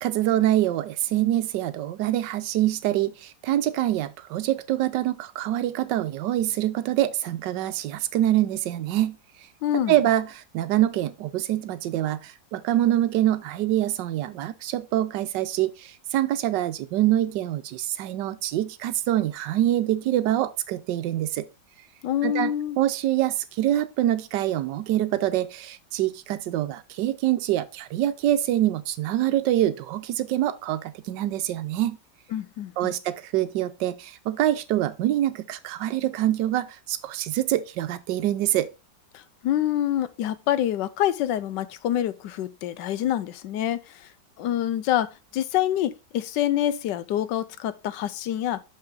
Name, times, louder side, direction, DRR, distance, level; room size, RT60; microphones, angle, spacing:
voice 1, 0.0-9.2 9.9-21.5 22.2-22.5 22.8-32.0 32.8-38.7, right 13 dB, 80° right, 1.3 m, -25 dB
voice 2, 9.6-10.0 22.0-22.8 32.3-32.9 39.1-44.1 44.4-48.6, left 11 dB, 80° left, 1.2 m, -26 dB
6.3 x 5.7 x 3.8 m
omnidirectional pair, 1.9 m